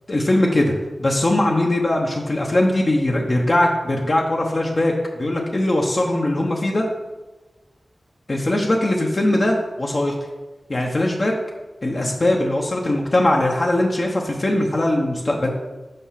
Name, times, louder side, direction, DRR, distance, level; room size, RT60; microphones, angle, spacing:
voice 1, 0.1-0.7 1.0-4.9 5.2-6.9 8.3-10.1 10.7-11.3 11.8-15.5, left 1 dB, 50° left, -1 dB, 1.0 m, -20 dB
5.5 x 5.3 x 5.7 m, 1.2 s
cardioid pair, 50°, 0 cm